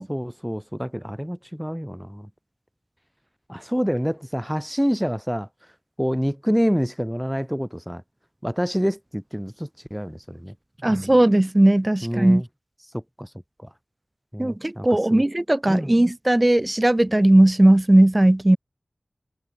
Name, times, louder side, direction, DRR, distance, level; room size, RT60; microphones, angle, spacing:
voice 1, 0.0-2.3 3.5-5.5 6.0-8.0 8.4-10.5 10.9-11.1 12.0-12.4 12.9-13.3 14.3-15.2 15.7-15.9, equal, ahead, 3.5 m, -27 dB
voice 2, 10.8-12.4 14.4-18.6, right 1 dB, 25° right, 4.2 m, -17 dB
wide cardioid pair, 65°, 0 cm